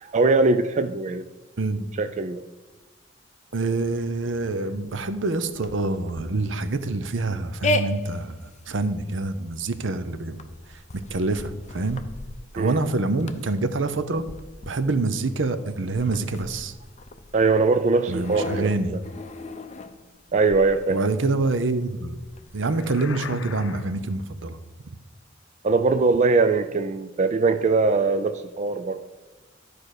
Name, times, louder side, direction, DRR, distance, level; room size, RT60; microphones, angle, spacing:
voice 1, 0.0-1.3 2.0-2.4 12.6-12.8 17.3-19.0 20.3-21.0 25.6-29.0, right 3 dB, 40° right, 9 dB, 0.4 m, -21 dB
sound 1, 3.5-23.0, left 2 dB, 40° left, 0.6 m, -37 dB
voice 2, 3.5-8.4 8.7-10.4 10.9-12.0 12.5-14.3 14.6-16.7 18.1-18.9 20.9-22.2 22.5-24.6, right 3 dB, 70° right, 11 dB, 0.7 m, -26 dB
sound 2, 22.6-24.2, left 5 dB, 85° left, 0.6 m, -38 dB
12.0 x 4.7 x 6.6 m, 1.1 s
head